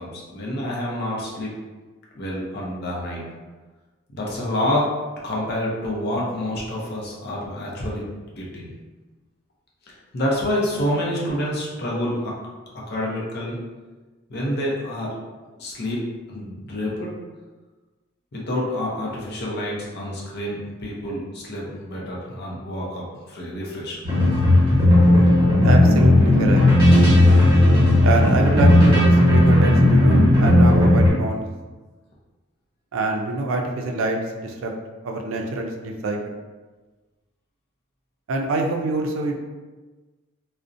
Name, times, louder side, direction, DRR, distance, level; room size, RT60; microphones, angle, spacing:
voice 1, 0.0-1.5 2.2-3.2 4.1-4.9 5.2-8.1 8.3-8.7 9.9-12.3 12.9-13.6 14.3-15.1 15.6-16.0 16.3-17.1 18.3-24.0, left 1 dB, 50° left, -4 dB, 0.6 m, -28 dB
sound 1, 24.0-31.1, left 1 dB, 25° right, 1.1 m, -15 dB
voice 2, 25.6-26.6 28.0-31.4 32.9-34.7 35.0-36.3 38.3-39.3, right 2 dB, 75° right, 3 dB, 0.4 m, -25 dB
2.5 x 2.0 x 2.5 m, 1.3 s
head